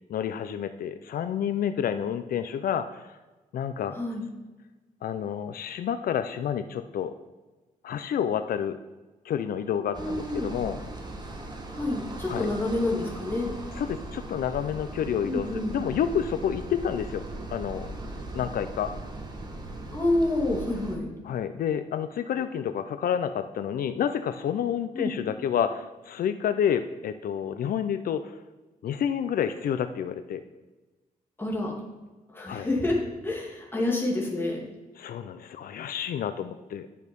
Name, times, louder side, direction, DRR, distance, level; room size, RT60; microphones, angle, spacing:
voice 1, 0.1-3.2 3.5-4.0 5.0-7.1 7.8-8.8 9.2-10.8 12.3-12.5 13.8-17.2 17.5-17.9 18.3-18.9 21.2-28.4 28.8-30.4 32.5-32.7 35.0-36.9, left 8 dB, 80° left, 10 dB, 0.5 m, -29 dB
voice 2, 3.9-4.3 10.0-10.5 11.7-13.5 15.2-15.8 19.9-21.1 24.9-25.2 31.4-31.7 32.3-33.0 33.2-34.6, left 2 dB, 15° left, -2 dB, 2.2 m, -28 dB
sound 1, 9.9-21.0, right 2 dB, 30° right, 1.2 m, -39 dB
10.5 x 6.4 x 5.3 m, 1.2 s
wide cardioid pair, 160°, 15 cm